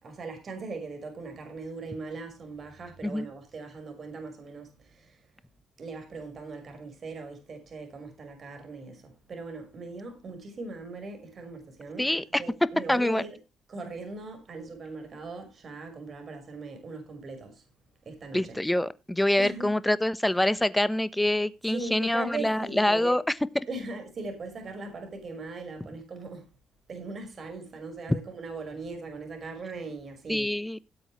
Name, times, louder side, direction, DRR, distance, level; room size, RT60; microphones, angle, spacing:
voice 1, 0.0-5.3 5.8-12.1 12.4-13.4 13.7-17.6 18.1-18.6 19.4-19.7 21.7-23.2 23.7-26.5 26.9-30.6, right 3 dB, 45° right, 5.5 m, -39 dB
voice 2, 12.0-12.4 12.9-13.2 18.3-23.2 30.3-30.8, left 1 dB, 10° left, 1.1 m, -25 dB
17.5 x 8.0 x 3.2 m
cardioid pair, 90°, 0 cm